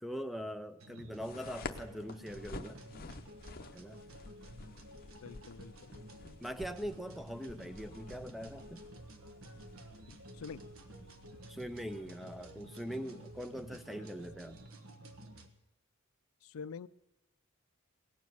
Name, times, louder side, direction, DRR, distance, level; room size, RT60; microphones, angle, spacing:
voice 1, 0.0-2.8 3.7-4.0 6.4-8.8 11.5-14.6, equal, ahead, 10 dB, 0.5 m, -42 dB
sound 1, 0.8-15.5, right 1 dB, 75° right, 1.3 m, -52 dB
sound 2, 1.2-14.7, left 3 dB, 45° left, 0.7 m, -51 dB
voice 2, 5.2-5.9 10.1-10.6 14.0-14.1 16.4-16.9, left 6 dB, 80° left, 16 dB, 0.4 m, -46 dB
18.0 x 7.2 x 9.3 m, 0.94 s
head